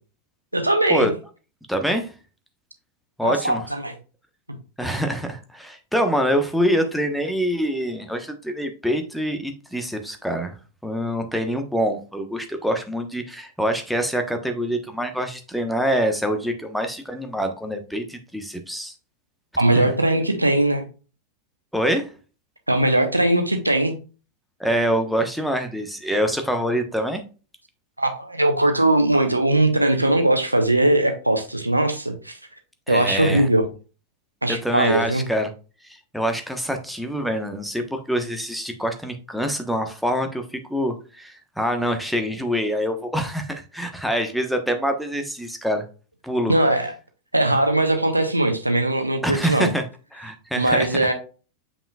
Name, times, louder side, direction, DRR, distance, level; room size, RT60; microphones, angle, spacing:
voice 1, 0.5-1.1 3.2-3.9 19.6-20.8 22.7-24.0 28.0-32.4 32.9-33.7 34.4-35.3 46.5-46.9 47.3-49.7 50.6-51.1, right 1 dB, 85° right, 6 dB, 1.0 m, -20 dB
voice 2, 1.7-2.1 3.2-3.6 4.8-10.6 10.8-18.9 19.7-19.9 21.7-22.1 24.6-27.2 32.9-33.5 34.6-35.5 36.1-45.8 46.2-46.5 49.2-49.8 50.1-51.1, equal, ahead, 5 dB, 1.1 m, -25 dB
7.1 x 5.6 x 2.4 m, 0.34 s
figure-of-eight pair, 90°, 0 cm